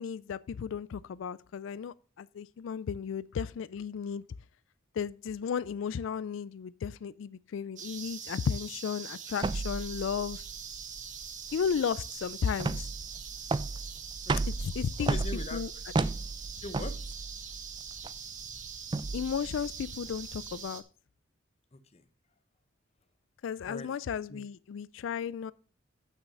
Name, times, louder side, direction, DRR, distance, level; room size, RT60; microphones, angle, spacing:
voice 1, 0.0-4.2 4.9-10.4 11.5-12.9 14.5-15.2 15.5-15.7 19.1-20.8 23.4-25.5, left 7 dB, 70° left, 0.3 m, -34 dB
sound 1, 7.8-20.8, right 7 dB, 40° right, 1.2 m, -43 dB
sound 2, 9.4-20.6, right 3 dB, 25° right, 0.4 m, -35 dB
voice 2, 15.0-16.1 16.6-16.9 21.7-22.0 23.7-23.9 24.3-24.4, left 2 dB, 35° left, 0.8 m, -42 dB
8.9 x 6.2 x 5.4 m
head